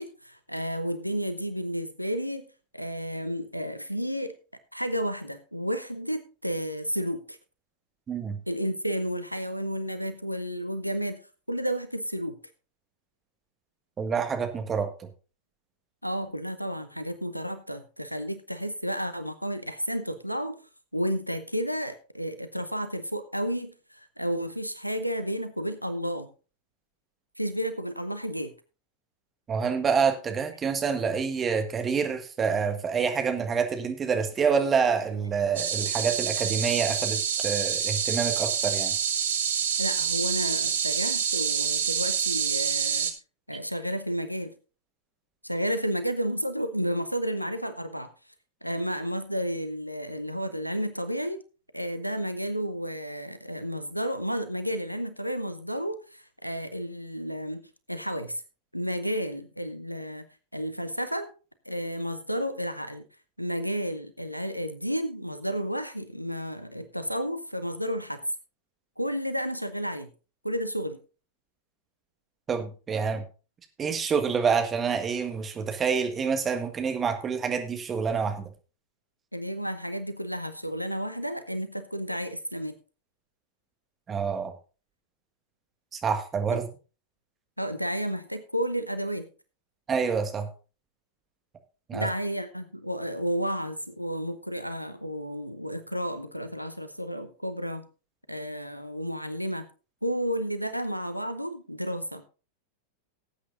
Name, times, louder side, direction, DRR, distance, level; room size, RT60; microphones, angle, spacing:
voice 1, 0.0-2.5 2.7-4.3 4.7-7.4 8.5-11.2 11.5-12.4 16.0-20.6 20.9-26.3 27.4-28.5 39.8-43.1 43.5-44.5 45.4-48.1 48.6-51.4 51.7-57.6 57.9-58.4 58.7-60.3 60.5-61.3 61.7-63.0 63.4-68.2 69.0-70.1 70.4-71.0 79.3-82.8 86.5-86.6 87.6-89.3 91.9-97.9 98.3-99.7 100.0-102.3, equal, 90° right, 10 dB, 0.8 m, -32 dB
voice 2, 8.1-8.4 14.0-14.9 29.5-38.9 72.5-73.2 73.8-78.5 84.1-84.5 85.9-86.7 89.9-90.5 91.9-92.1, right 6 dB, 20° right, 6 dB, 1.7 m, -27 dB
sound 1, 35.6-43.1, right 8 dB, 65° right, 1.4 m, -27 dB
18.5 x 8.6 x 2.5 m, 0.35 s
figure-of-eight pair, 90°, 0 cm